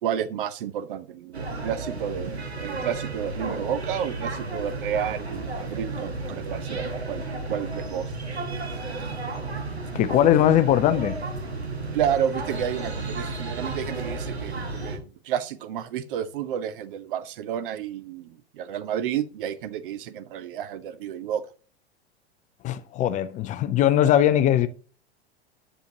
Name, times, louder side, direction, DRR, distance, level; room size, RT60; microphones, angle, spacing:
voice 1, 0.0-8.1 11.9-21.4, right 9 dB, 55° right, 0.9 m, -31 dB
sound 1, 1.3-15.0, right 3 dB, 85° right, 1.6 m, -33 dB
voice 2, 9.9-11.2 22.6-24.7, left 11 dB, 25° left, 0.4 m, -20 dB
10.5 x 6.6 x 2.8 m
figure-of-eight pair, 90°, 31 cm